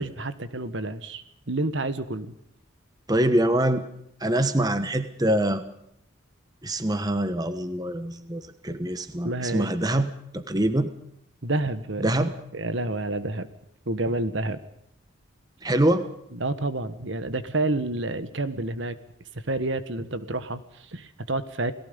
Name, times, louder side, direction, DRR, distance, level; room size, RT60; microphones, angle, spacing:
voice 1, 0.0-2.3 9.2-9.7 11.4-13.5 13.9-14.6 16.3-19.0 19.5-21.7, right 2 dB, 60° right, 11 dB, 1.6 m, -29 dB
voice 2, 3.1-3.8 4.2-5.6 6.6-10.1 10.3-10.9 12.0-12.3 15.6-16.0, right 1 dB, 20° right, 10 dB, 1.2 m, -24 dB
29.5 x 18.5 x 5.3 m, 0.74 s
head